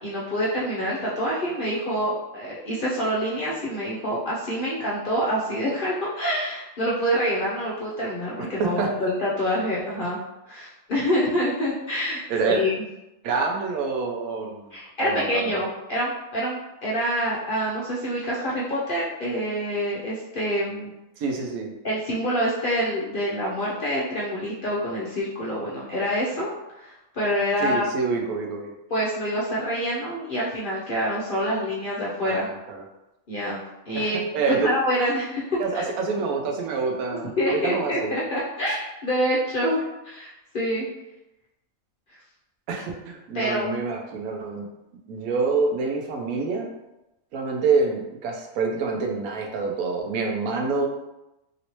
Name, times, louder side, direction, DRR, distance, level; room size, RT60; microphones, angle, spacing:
voice 1, 0.0-10.2 10.5-12.7 14.7-20.9 21.8-26.5 26.8-27.8 28.9-32.5 33.3-33.6 33.9-35.8 37.4-40.9 43.3-43.7, equal, 55° left, -6 dB, 0.6 m, -26 dB
voice 2, 8.6-8.9 12.3-12.6 13.2-14.7 15.0-15.6 21.2-21.7 27.6-28.7 32.2-32.8 33.9-34.7 35.6-38.2 38.7-38.8 42.7-44.6 45.1-46.7 47.3-50.9, right 4 dB, 80° right, 2 dB, 1.0 m, -26 dB
3.0 x 2.8 x 2.9 m, 0.94 s
omnidirectional pair, 1.5 m